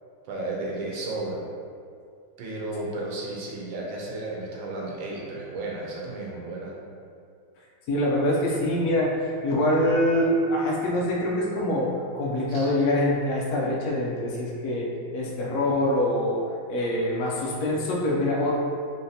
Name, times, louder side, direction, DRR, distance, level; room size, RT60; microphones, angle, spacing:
voice 1, 0.3-1.4 2.4-6.7 12.5-12.7, right 2 dB, 75° right, -2 dB, 1.4 m, -33 dB
voice 2, 7.9-9.2 9.4-14.9 15.1-16.4 16.7-18.5, left 1 dB, 65° left, -4 dB, 1.0 m, -24 dB
4.0 x 3.6 x 2.7 m, 2.3 s
omnidirectional pair, 2.2 m